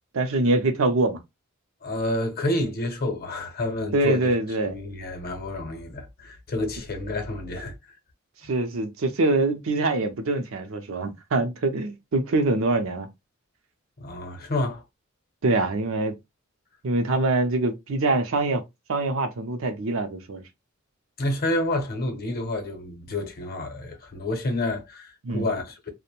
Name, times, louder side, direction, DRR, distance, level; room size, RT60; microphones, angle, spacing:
voice 1, 0.1-1.2 3.9-4.7 8.5-13.1 15.4-16.1 16.8-18.6 18.9-20.4 25.2-25.5, right 2 dB, 65° right, 0.5 m, -24 dB
voice 2, 1.8-4.3 4.6-7.7 14.0-14.8 21.2-25.9, left 1 dB, 45° left, 0.7 m, -29 dB
2.5 x 2.1 x 2.9 m
head